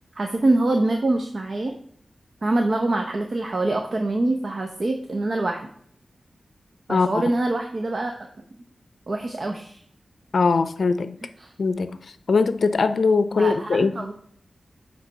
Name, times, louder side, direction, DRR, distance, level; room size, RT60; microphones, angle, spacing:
voice 1, 0.1-1.7 2.4-5.6 6.9-8.1 9.1-9.8 11.4-11.5 13.4-14.1, right 2 dB, 50° right, 3 dB, 0.7 m, -24 dB
voice 2, 6.9-7.2 10.3-11.2 11.6-12.0 12.3-14.0, left 4 dB, 75° left, 12 dB, 0.5 m, -21 dB
8.0 x 3.3 x 5.3 m, 0.62 s
wide cardioid pair, 85°, 0 cm